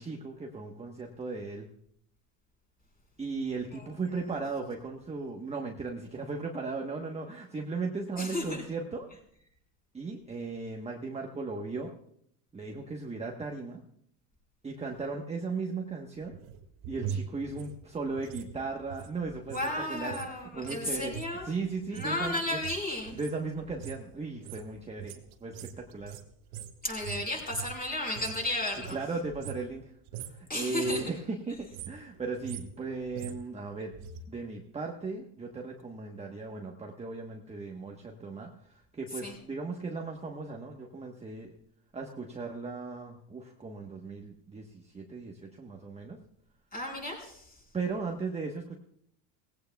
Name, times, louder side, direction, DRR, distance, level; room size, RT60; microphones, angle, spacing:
voice 1, 0.0-1.7 3.2-9.1 9.9-11.9 12.5-13.8 14.6-16.3 16.9-21.2 21.4-22.6 23.1-26.2 28.9-29.9 30.2-41.5 41.9-46.2 47.7-48.7, right 3 dB, 15° right, 1 dB, 1.1 m, -37 dB
voice 2, 8.2-8.6 19.5-21.4 21.9-23.2 26.8-29.0 30.5-31.0 39.2-39.3 46.7-47.4, left 1 dB, 20° left, 0 dB, 4.9 m, -33 dB
sound 1, 16.2-19.7 20.0-28.5 28.7-29.8 30.1-30.4 30.7-31.2 31.5-34.2 34.5-34.6, right 8 dB, 70° right, 1.5 m, -43 dB
19.0 x 16.0 x 2.3 m, 0.69 s
supercardioid pair, 125°, 48 cm